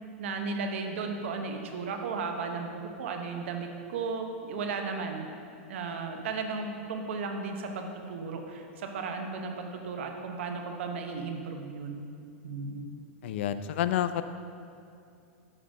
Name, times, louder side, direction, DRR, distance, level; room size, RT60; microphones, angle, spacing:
voice 1, 0.2-5.3 5.7-12.0 12.4-12.9, right 4 dB, 75° right, 4 dB, 0.9 m, -35 dB
voice 2, 13.2-14.2, left 11 dB, 65° left, 11 dB, 0.4 m, -29 dB
6.4 x 3.9 x 6.2 m, 2.4 s
supercardioid pair, 135°, 7 cm